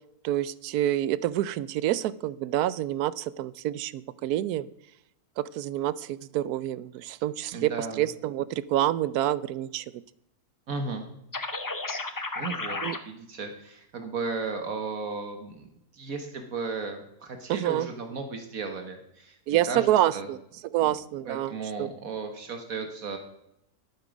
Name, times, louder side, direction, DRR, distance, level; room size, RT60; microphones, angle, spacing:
voice 1, 0.2-4.7 5.4-7.7 8.0-10.0 12.8-13.0 17.5-17.9 19.5-20.4 20.7-21.5 21.8-21.9, right 13 dB, 85° right, 18 dB, 1.1 m, -27 dB
voice 2, 7.5-8.0 10.7-11.0 12.4-15.7 15.9-20.3 20.8-20.9 21.2-23.2, right 4 dB, 65° right, 6 dB, 1.6 m, -35 dB
sound 1, 11.3-13.0, left 3 dB, 30° left, 0.4 m, -32 dB
11.5 x 9.0 x 5.2 m, 0.80 s
omnidirectional pair, 1.6 m